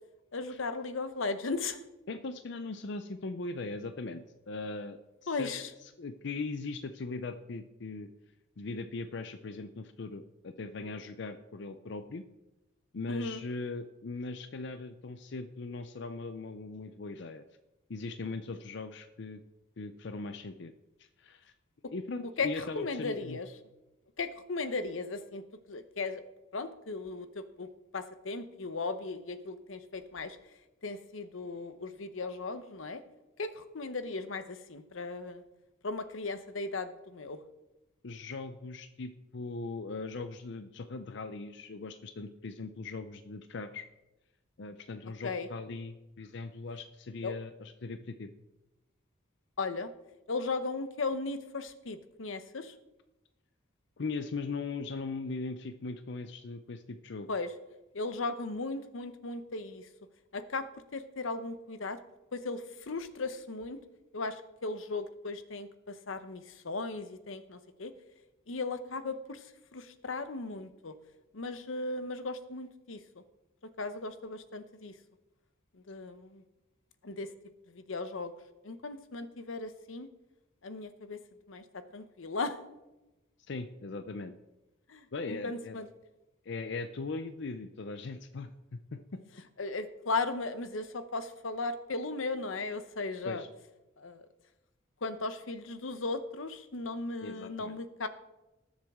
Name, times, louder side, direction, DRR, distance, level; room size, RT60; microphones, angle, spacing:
voice 1, 0.3-1.8 5.3-5.7 13.1-13.4 22.4-23.5 24.2-25.4 25.7-26.2 26.5-27.7 27.9-30.4 30.8-33.0 33.4-35.4 35.8-37.4 45.2-45.5 47.2-47.3 49.6-49.9 50.3-52.7 57.3-57.5 57.9-59.9 60.3-62.0 62.3-63.8 64.1-67.9 68.5-70.9 71.3-73.0 73.8-74.9 75.7-76.4 77.0-77.3 77.7-78.3 78.6-80.1 80.6-81.2 81.5-82.6 84.9-85.9 89.6-93.4 94.0-94.2 95.0-98.1, left 3 dB, 85° left, 11 dB, 0.9 m, -37 dB
voice 2, 2.1-5.5 5.8-8.1 8.6-12.2 12.9-17.4 17.9-19.4 19.8-20.7 21.0-21.5 21.9-23.4 38.0-43.9 44.6-48.3 54.0-57.3 83.5-84.3 85.1-85.8 86.4-89.2 93.2-93.5 97.2-97.7, left 3 dB, 60° left, 9 dB, 0.6 m, -39 dB
19.5 x 7.4 x 3.6 m, 1.0 s
head